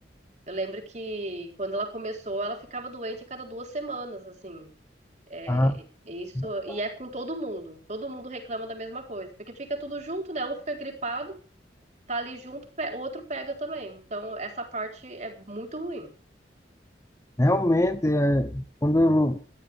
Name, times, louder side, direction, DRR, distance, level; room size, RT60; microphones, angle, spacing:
voice 1, 0.5-4.7 5.3-11.4 12.1-16.1, right 2 dB, 40° right, 3 dB, 3.9 m, -34 dB
voice 2, 5.5-5.8 6.3-6.8 17.4-19.4, left 1 dB, 15° left, 11 dB, 0.6 m, -23 dB
20.5 x 13.0 x 3.5 m, 0.38 s
head